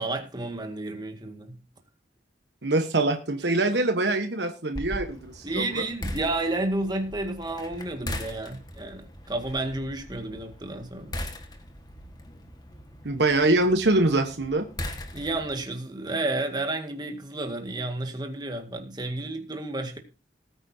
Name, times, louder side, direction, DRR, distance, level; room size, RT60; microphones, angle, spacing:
voice 1, 0.0-1.6 5.4-11.2 15.1-20.0, right 2 dB, 25° right, 1.8 m, -31 dB
voice 2, 2.6-5.9 13.0-14.7, right 2 dB, 80° right, 1.2 m, -24 dB
sound 1, 4.7-15.6, left 1 dB, 25° left, 1.6 m, -40 dB
19.0 x 9.1 x 2.8 m
head